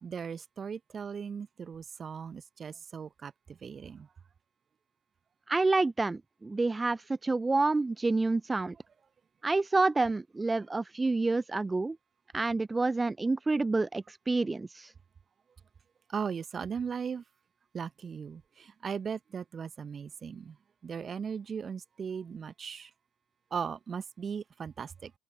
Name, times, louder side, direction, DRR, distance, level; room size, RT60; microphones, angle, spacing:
voice 1, 0.0-3.3 3.6-4.1 16.1-17.2 17.7-20.6 20.8-22.9 23.5-25.1, right 6 dB, 40° right, 1.2 m, -38 dB
voice 2, 5.5-8.8 9.4-12.0 12.3-14.9, right 3 dB, 20° right, 0.7 m, -28 dB
open air
figure-of-eight pair, 45°, 0 cm